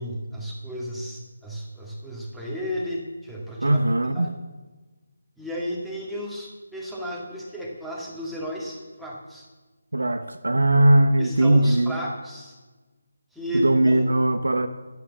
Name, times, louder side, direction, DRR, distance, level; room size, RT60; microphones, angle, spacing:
voice 1, 0.0-3.8 4.1-4.3 5.4-9.5 11.2-12.6 13.3-14.0, equal, ahead, -4 dB, 2.1 m, -33 dB
voice 2, 3.6-4.3 9.9-12.0 13.5-14.7, right 1 dB, 70° right, 9 dB, 0.9 m, -19 dB
11.5 x 11.0 x 7.2 m, 1.2 s
figure-of-eight pair, 155°, 0 cm